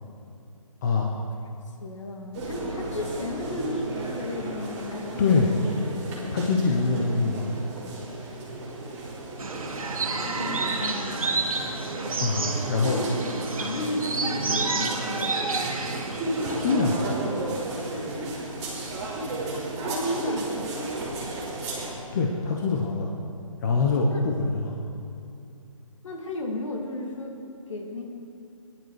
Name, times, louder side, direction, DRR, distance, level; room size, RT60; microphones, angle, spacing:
voice 1, 0.8-1.1 5.2-5.5 6.3-7.5 12.2-13.0 16.4-17.0 22.1-23.1 23.6-24.7, left 4 dB, 30° left, 0 dB, 1.2 m, -24 dB
voice 2, 1.8-5.7 6.1-6.3 10.2-11.4 12.8-15.4 19.4-20.7 24.1-24.2 26.0-27.4 27.7-28.1, left 1 dB, 60° left, 1 dB, 2.3 m, -34 dB
sound 1, 2.3-21.9, right 2 dB, 20° right, 3.0 m, -34 dB
sound 2, 9.4-17.0, right 3 dB, 80° right, 1.9 m, -30 dB
17.0 x 11.0 x 5.0 m, 2.7 s
hypercardioid pair, 160°, 18 cm